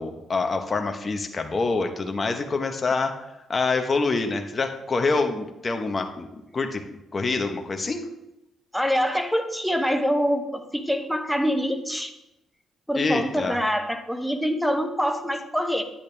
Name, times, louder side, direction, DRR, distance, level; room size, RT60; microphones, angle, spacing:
voice 1, 0.0-6.3 6.5-6.8 7.1-8.1 12.9-13.6, left 3 dB, 30° left, 5 dB, 1.0 m, -26 dB
voice 2, 8.7-12.1 12.9-15.8, equal, ahead, 6 dB, 0.9 m, -25 dB
10.0 x 8.8 x 3.4 m, 0.91 s
cardioid pair, 90°, 0 cm